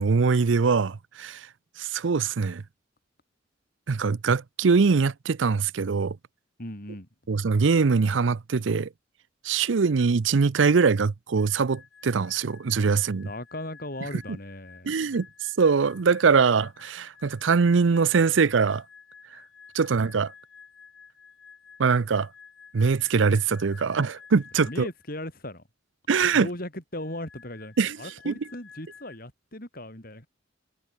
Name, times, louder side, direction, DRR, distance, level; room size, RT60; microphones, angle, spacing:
voice 1, 0.0-1.4 1.8-2.6 3.9-6.2 7.3-8.9 9.4-13.3 14.9-15.3 15.6-18.8 19.7-20.3 21.8-22.3 22.7-24.9 26.1-26.5 27.8-28.0 28.3-28.4, right 5 dB, 85° right, 0.6 m, -22 dB
voice 2, 6.6-7.1 13.2-15.2 24.6-25.6 26.2-30.3, left 1 dB, 50° left, 6.4 m, -38 dB
sound 1, 11.4-25.1 27.0-29.2, left 6 dB, 75° left, 3.1 m, -52 dB
head